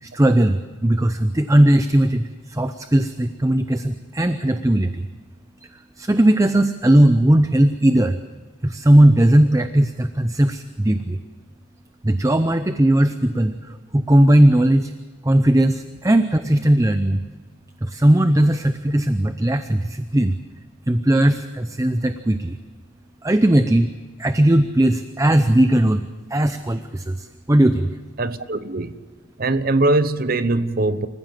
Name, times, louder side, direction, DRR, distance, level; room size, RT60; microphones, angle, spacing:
voice 1, 0.0-5.1 6.0-8.2 8.6-11.2 12.0-14.9 15.2-17.2 17.8-20.3 20.9-22.6 23.2-23.9 24.2-26.1 26.3-27.9, right 1 dB, 15° right, 0.6 m, -18 dB
voice 2, 28.2-29.0 29.4-31.1, right 2 dB, 45° right, 0.9 m, -21 dB
27.0 x 15.0 x 7.6 m
head